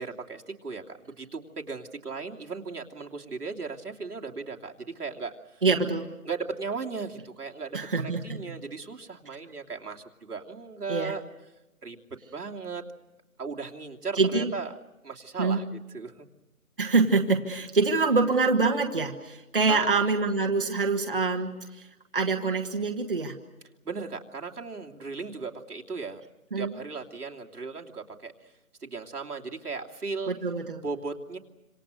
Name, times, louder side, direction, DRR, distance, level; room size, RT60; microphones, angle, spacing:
voice 1, 0.0-5.6 6.2-11.2 11.8-12.8 13.4-14.7 15.0-15.6 15.9-16.3 19.7-19.9 23.8-26.2 26.5-28.5 28.8-30.3 30.8-31.4, right 4 dB, 90° right, 1 dB, 3.0 m, -37 dB
voice 2, 5.6-6.1 7.7-8.4 10.9-11.1 14.2-14.5 15.4-15.6 16.8-21.9 22.1-23.4 26.5-26.7 30.3-30.8, right 4 dB, 35° right, 4 dB, 1.5 m, -25 dB
26.5 x 26.5 x 6.5 m, 1.0 s
hypercardioid pair, 180°, 44 cm